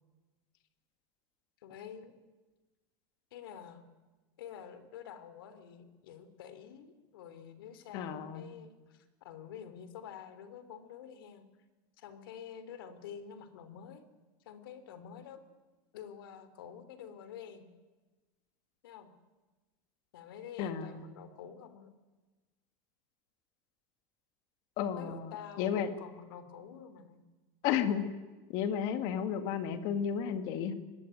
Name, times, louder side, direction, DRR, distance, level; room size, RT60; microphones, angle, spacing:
voice 1, 1.6-2.2 3.3-3.8 4.4-11.4 12.0-14.0 14.5-15.4 15.9-17.7 18.8-19.1 20.1-21.9 25.0-27.2, left 8 dB, 85° left, 12 dB, 3.6 m, -48 dB
voice 2, 7.9-8.5 20.6-21.0 24.8-25.3 25.6-25.9 27.6-28.1 28.5-30.7, left 8 dB, 40° left, 9 dB, 2.2 m, -32 dB
24.5 x 20.5 x 9.3 m, 1.2 s
supercardioid pair, 180°, 12 cm